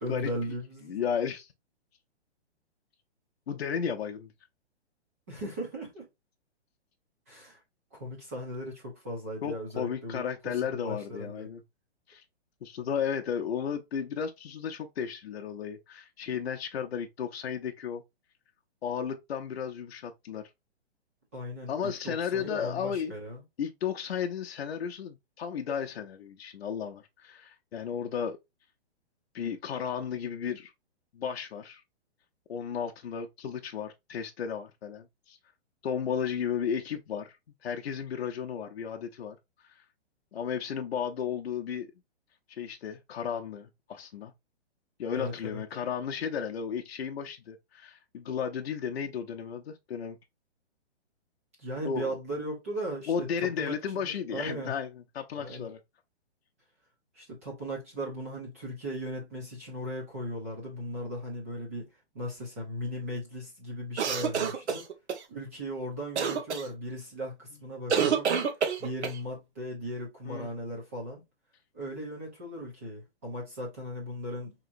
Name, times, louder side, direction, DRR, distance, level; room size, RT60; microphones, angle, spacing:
voice 1, 0.0-1.0 5.3-6.1 7.3-7.6 7.9-11.5 21.3-23.4 45.1-45.6 51.6-54.7 55.3-55.7 57.1-61.9 62.1-64.8 65.3-68.3 68.8-71.2 71.7-74.5, equal, 15° right, 0.7 m, -37 dB
voice 2, 0.9-1.5 3.5-4.3 9.4-11.6 12.1-12.2 12.6-18.0 18.8-20.4 21.7-23.1 23.6-28.4 29.3-30.7 31.1-31.8 32.5-35.4 35.8-37.4 37.6-39.4 39.7-39.8 40.3-41.9 42.5-44.3 45.0-50.2 51.8-52.1 53.1-55.8 64.7-64.8 70.2-70.5, left 7 dB, 65° left, 0.7 m, -34 dB
sound 1, 64.0-65.2 66.2-66.6 67.9-69.2, right 6 dB, 80° right, 1.1 m, -27 dB
4.8 x 2.9 x 2.5 m
hypercardioid pair, 180°, 34 cm